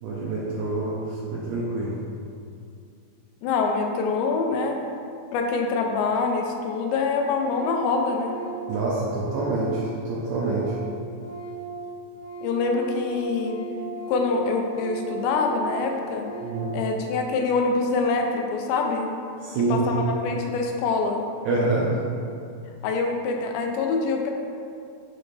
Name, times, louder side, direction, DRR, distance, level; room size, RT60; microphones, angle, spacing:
voice 1, 0.0-1.9 8.7-10.7 16.4-16.7 19.4-19.9 21.4-21.9, right 3 dB, 80° right, -6 dB, 2.2 m, -26 dB
voice 2, 3.4-4.8 5.3-8.3 12.4-13.6 14.1-16.3 16.7-19.1 19.7-21.3 22.8-24.3, left 4 dB, 90° left, 3 dB, 2.9 m, -25 dB
Organ, 6.2-6.3 6.5-6.9 7.2-10.8 11.1-16.7, right 4 dB, 75° left, 2.4 m, -38 dB
7.0 x 4.2 x 3.3 m, 2.4 s
omnidirectional pair, 5.0 m